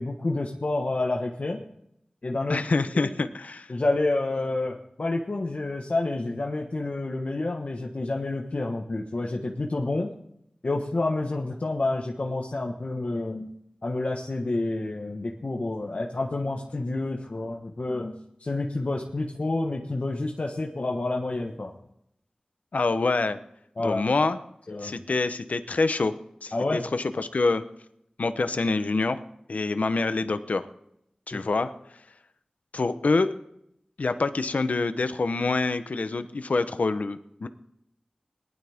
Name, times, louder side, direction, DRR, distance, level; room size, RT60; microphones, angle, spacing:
voice 1, 0.0-1.6 2.2-2.6 3.7-10.1 10.6-13.5 13.8-18.1 18.4-21.7 23.8-24.0 24.7-25.0 26.5-26.9 31.3-31.4, left 2 dB, 65° left, 0 dB, 1.4 m, -29 dB
voice 2, 2.5-3.7 22.7-23.4 23.8-24.4 24.8-26.1 26.4-27.6 28.2-29.2 29.5-30.7 31.3-31.7 32.7-33.3 34.0-37.5, left 3 dB, 85° left, 11 dB, 0.9 m, -26 dB
19.5 x 12.0 x 3.6 m, 0.75 s
wide cardioid pair, 50°, 2 cm